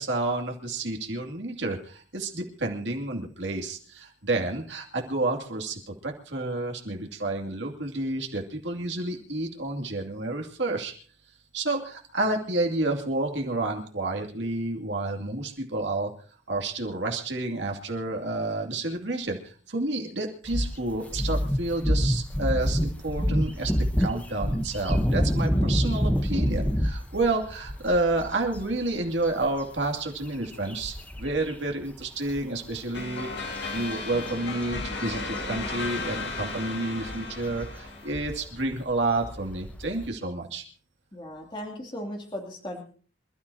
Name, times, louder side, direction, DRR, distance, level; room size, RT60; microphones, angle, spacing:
voice 1, 0.0-10.9 11.5-16.1 16.5-23.7 24.0-40.6, right 2 dB, 65° right, 2 dB, 2.6 m, -30 dB
sound 1, 20.5-31.6 31.8-32.0 32.3-40.1, equal, 5° left, 1.0 m, -28 dB
sound 2, 32.9-38.4, left 3 dB, 55° left, 2.2 m, -35 dB
voice 2, 41.1-42.8, left 1 dB, 25° left, 0 dB, 2.7 m, -37 dB
27.0 x 13.0 x 2.9 m, 0.40 s
head